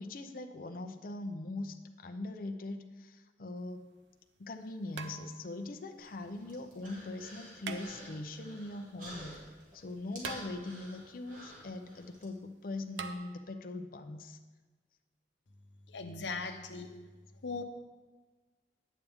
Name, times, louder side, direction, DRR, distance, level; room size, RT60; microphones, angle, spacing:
voice 1, 0.0-3.8 4.4-9.4 9.7-14.4, left 2 dB, 50° left, 6 dB, 0.6 m, -41 dB
sound 1, 3.6-3.7 4.9-5.7 7.6-8.4 10.2-11.0 13.0-13.2, right 5 dB, 85° right, 0.5 m, -44 dB
Human voice, 6.0-12.2, equal, 50° right, 2.3 m, -50 dB
voice 2, 15.9-16.9 17.4-17.6, left 4 dB, 85° left, 5 dB, 0.8 m, -38 dB
9.2 x 8.3 x 3.5 m, 1.3 s
head